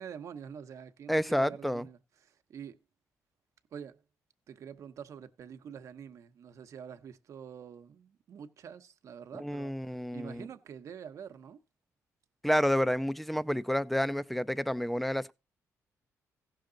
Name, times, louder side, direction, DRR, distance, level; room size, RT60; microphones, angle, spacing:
voice 1, 0.0-2.8 3.7-4.0 4.5-11.6, right 7 dB, 65° right, 0.9 m, -46 dB
voice 2, 1.1-1.9 9.3-10.5 12.4-15.3, equal, ahead, 0.5 m, -29 dB
15.5 x 6.5 x 3.9 m
cardioid pair, 110°, 6 cm